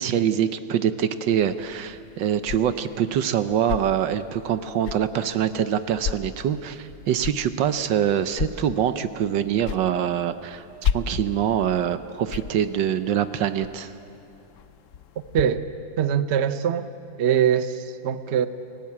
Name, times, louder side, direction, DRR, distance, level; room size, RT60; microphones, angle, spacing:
voice 1, 0.0-13.9, right 9 dB, 70° right, 12 dB, 1.4 m, -24 dB
sound 1, 1.4-15.4, left 7 dB, 70° left, 0.7 m, -35 dB
voice 2, 15.3-15.6 16.0-16.9 17.2-18.5, right 9 dB, 55° right, 12 dB, 0.8 m, -22 dB
29.5 x 18.0 x 8.6 m, 2.6 s
omnidirectional pair, 2.1 m